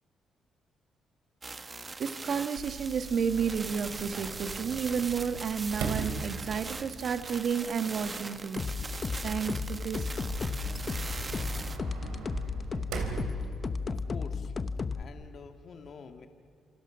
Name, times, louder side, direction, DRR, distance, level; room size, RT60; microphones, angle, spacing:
sound 1, 1.4-11.8, right 3 dB, 25° right, 1.1 m, -41 dB
voice 1, 2.0-8.7 9.2-10.1, right 6 dB, 60° right, 9 dB, 1.5 m, -31 dB
Sliding door, 2.6-14.1, right 5 dB, 85° right, 3.2 m, -41 dB
sound 2, 8.6-15.0, left 5 dB, 35° left, 0.8 m, -34 dB
voice 2, 13.9-14.7 15.0-16.3, left 5 dB, 55° left, 6 dB, 1.7 m, -48 dB
28.0 x 27.5 x 6.3 m, 2.4 s
cardioid pair, 90°, 0 cm